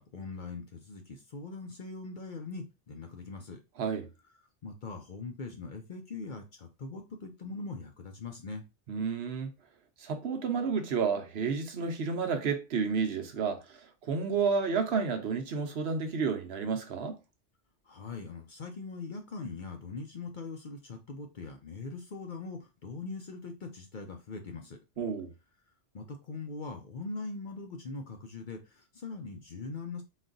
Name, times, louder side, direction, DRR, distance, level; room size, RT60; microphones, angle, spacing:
voice 1, 0.0-3.6 4.6-8.7 17.8-24.8 25.9-30.0, left 3 dB, 50° left, 0.7 m, -41 dB
voice 2, 8.9-9.5 10.0-17.2 25.0-25.3, right 5 dB, 65° right, 0.9 m, -31 dB
4.0 x 2.4 x 3.8 m
omnidirectional pair, 1.2 m